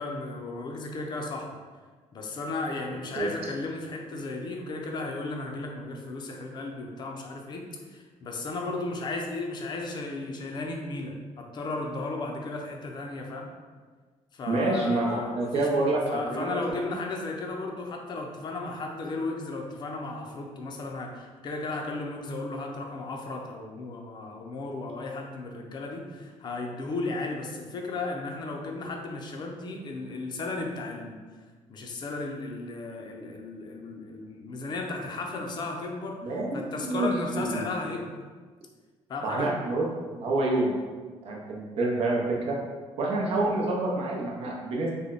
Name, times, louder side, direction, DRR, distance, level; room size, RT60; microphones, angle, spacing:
voice 1, 0.0-1.5 2.1-13.5 14.3-31.2 31.7-36.2 36.5-38.2 39.1-39.5, left 3 dB, 40° left, 1 dB, 0.5 m, -35 dB
voice 2, 14.5-16.9 36.2-37.6 39.2-39.9 40.2-40.7 41.2-42.6 43.0-44.9, right 2 dB, 55° right, -2 dB, 0.7 m, -27 dB
3.4 x 2.2 x 3.8 m, 1.5 s
cardioid pair, 145°, 12 cm